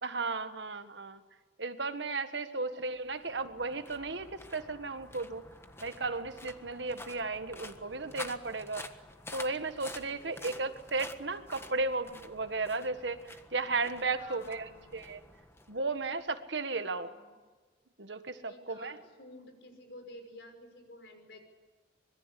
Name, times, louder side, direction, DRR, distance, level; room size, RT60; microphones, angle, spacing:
voice 1, 0.0-1.2 1.6-5.4 5.8-8.9 9.3-14.7 14.9-15.2 15.7-17.1 18.0-19.0, right 3 dB, 75° right, 9 dB, 1.6 m, -35 dB
sound 1, 2.9-16.3, left 2 dB, 15° left, 1.5 m, -49 dB
voice 2, 10.0-10.7 14.1-15.0 16.8-17.4 18.5-21.4, left 1 dB, 70° left, 5 dB, 5.7 m, -52 dB
25.5 x 22.0 x 8.5 m, 1.4 s
head